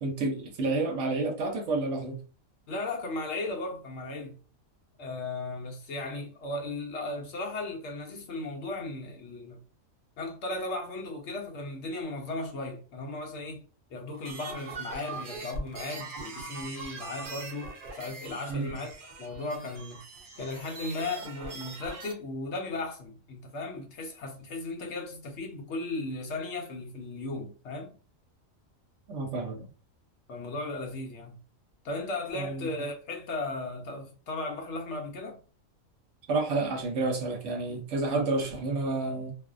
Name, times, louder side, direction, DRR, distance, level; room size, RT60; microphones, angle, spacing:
voice 1, 0.0-2.2 18.5-18.8 29.1-29.7 32.3-32.7 36.3-39.3, right 3 dB, 70° right, 1.0 m, -30 dB
voice 2, 2.7-4.4 5.0-9.6 10.2-13.6 13.9-20.0 20.4-27.9 30.3-31.4 31.8-35.4, left 2 dB, 65° left, 0.8 m, -36 dB
sound 1, 14.1-22.1, right 3 dB, 50° right, 0.7 m, -42 dB
2.4 x 2.1 x 2.4 m
omnidirectional pair, 1.4 m